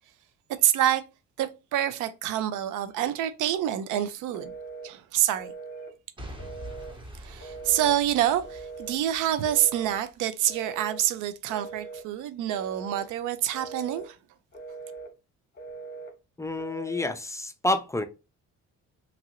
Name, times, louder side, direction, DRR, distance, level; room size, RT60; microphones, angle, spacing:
voice 1, 0.6-1.0 1.4-4.5 4.8-5.5 7.2-14.2, right 11 dB, 85° right, 0.5 m, -27 dB
Telephone, 4.3-4.9 5.4-5.9 6.4-7.0 7.4-8.0 8.4-9.0 9.4-10.0 10.5-11.0 11.5-12.1 12.5-13.1 13.5-14.1 14.5-15.1 15.6-16.1 16.6-17.2, right 4 dB, 35° left, 0.8 m, -41 dB
Boom / Shatter / Crushing, 6.2-10.2 10.7-10.8, right 1 dB, 15° right, 0.8 m, -45 dB
voice 2, 16.4-18.1, left 2 dB, 10° left, 0.3 m, -29 dB
2.9 x 2.5 x 2.8 m
cardioid pair, 90°, 30 cm